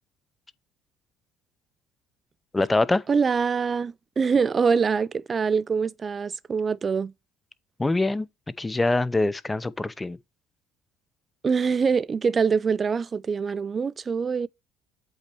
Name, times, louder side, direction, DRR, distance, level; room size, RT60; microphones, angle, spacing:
voice 1, 2.5-3.0 7.8-8.3 8.6-10.2, left 2 dB, 15° left, 0.7 m, -24 dB
voice 2, 3.1-7.1 11.4-14.5, right 5 dB, 30° right, 0.5 m, -24 dB
8.0 x 4.2 x 4.4 m
supercardioid pair, 95°, 0 cm